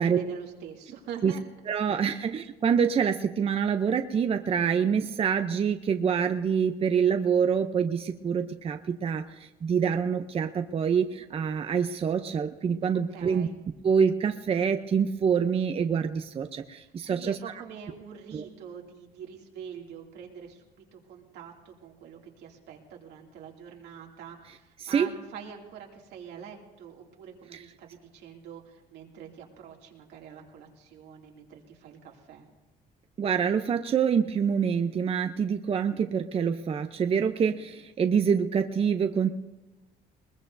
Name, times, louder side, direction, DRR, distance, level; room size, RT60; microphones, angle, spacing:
voice 1, 0.0-1.4 2.1-2.2 13.1-13.6 17.0-32.5, right 7 dB, 85° right, 0 dB, 2.6 m, -44 dB
voice 2, 1.7-13.5 13.8-17.4 18.3-18.4 24.8-25.1 27.5-27.6 33.2-39.3, right 7 dB, 35° right, 8 dB, 0.6 m, -26 dB
21.0 x 20.5 x 2.7 m, 1.1 s
cardioid pair, 110°, 17 cm